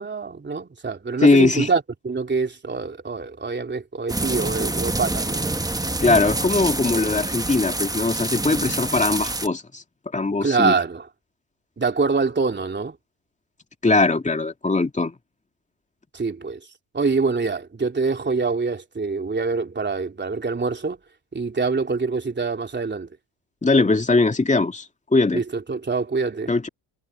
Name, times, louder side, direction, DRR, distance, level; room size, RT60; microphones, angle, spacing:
voice 1, 0.0-5.4 10.4-11.0 11.8-13.0 16.1-16.6 16.9-21.0 21.3-23.1 25.3-26.5, right 4 dB, 25° right, 3.2 m, -25 dB
voice 2, 1.2-1.7 6.0-9.8 10.1-10.7 13.8-15.2 23.6-24.8 25.1-25.4 26.5-26.7, left 3 dB, 15° left, 2.5 m, -20 dB
sound 1, 4.1-9.5, right 2 dB, 10° right, 1.2 m, -26 dB
supercardioid pair, 75°, 44 cm